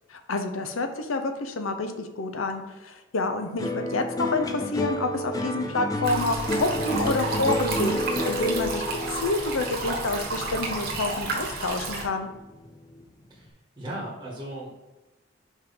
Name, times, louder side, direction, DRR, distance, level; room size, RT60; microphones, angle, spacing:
voice 1, 0.1-7.9 8.2-12.3, left 3 dB, 80° left, 7 dB, 0.7 m, -28 dB
sound 1, 3.6-12.0 12.4-13.0, equal, 15° left, 0.4 m, -30 dB
sound 2, 6.0-12.0, right 3 dB, 50° right, 1.2 m, -31 dB
voice 2, 13.8-14.7, right 1 dB, 15° right, -4 dB, 1.1 m, -36 dB
5.5 x 4.5 x 3.9 m, 1.1 s
head